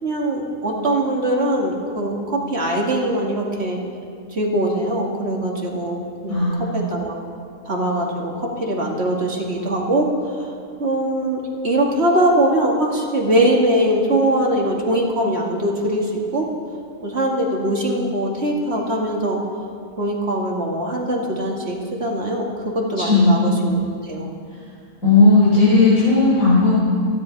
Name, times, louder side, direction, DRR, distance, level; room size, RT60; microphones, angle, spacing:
voice 1, 0.0-3.8 4.3-7.2 7.7-10.5 10.8-16.5 17.0-19.4 20.0-24.3, right 1 dB, 45° right, -1 dB, 2.4 m, -22 dB
voice 2, 6.3-6.8 23.0-23.4 24.5-24.6 25.0-26.8, left 3 dB, 60° left, -10 dB, 4.6 m, -15 dB
28.0 x 10.5 x 4.7 m, 2.3 s
omnidirectional pair, 1.6 m